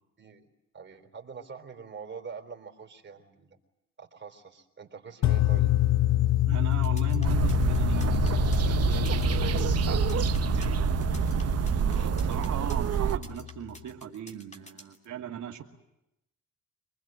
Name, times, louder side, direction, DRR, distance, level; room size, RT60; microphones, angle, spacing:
voice 1, 0.7-3.6 4.0-5.8, right 5 dB, 40° right, 4 dB, 3.9 m, -44 dB
sound 1, 5.2-13.4, left 13 dB, 65° left, 0.8 m, -27 dB
voice 2, 6.4-11.0 11.8-15.6, right 9 dB, 75° right, 1 dB, 2.6 m, -39 dB
sound 2, 6.7-15.0, left 1 dB, 25° left, 3.2 m, -50 dB
sound 3, 7.2-13.2, right 9 dB, 55° right, 1.0 m, -27 dB
26.0 x 20.0 x 9.1 m, 0.86 s
cardioid pair, 90°, 30 cm